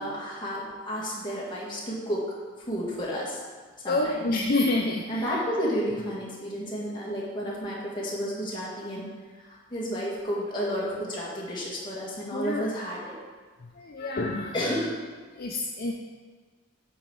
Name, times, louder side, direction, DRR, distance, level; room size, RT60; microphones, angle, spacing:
voice 1, 0.0-2.3 2.7-3.4 3.8-4.3 5.1-9.1 9.4-13.1 14.5-15.0, equal, 20° left, -6 dB, 1.6 m, -31 dB
voice 2, 3.9-5.2 12.3-12.7 13.8-14.5 15.4-15.9, left 2 dB, 45° left, 0 dB, 0.4 m, -27 dB
8.5 x 3.9 x 4.7 m, 1.5 s
head